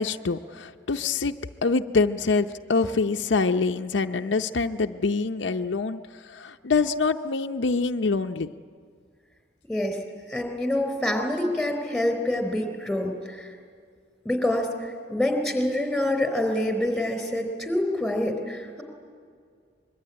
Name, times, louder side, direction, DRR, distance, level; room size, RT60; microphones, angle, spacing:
voice 1, 0.0-8.5, left 4 dB, 80° left, 6 dB, 0.6 m, -25 dB
voice 2, 9.7-10.0 10.3-13.5 14.2-18.8, left 1 dB, ahead, 6 dB, 3.8 m, -26 dB
24.5 x 22.5 x 9.8 m, 2.1 s
head